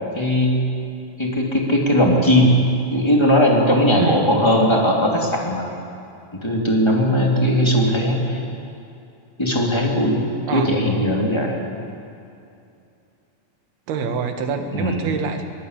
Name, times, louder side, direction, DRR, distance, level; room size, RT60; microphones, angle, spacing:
voice 1, 0.1-0.6 1.2-2.5 2.9-5.7 6.3-8.4 9.4-10.2 10.5-11.6 14.7-15.0, equal, 5° left, -1 dB, 3.2 m, -18 dB
voice 2, 4.0-4.4 10.5-11.2 13.9-15.4, right 6 dB, 75° right, 5 dB, 3.7 m, -26 dB
22.0 x 21.0 x 8.7 m, 2.6 s
omnidirectional pair, 4.5 m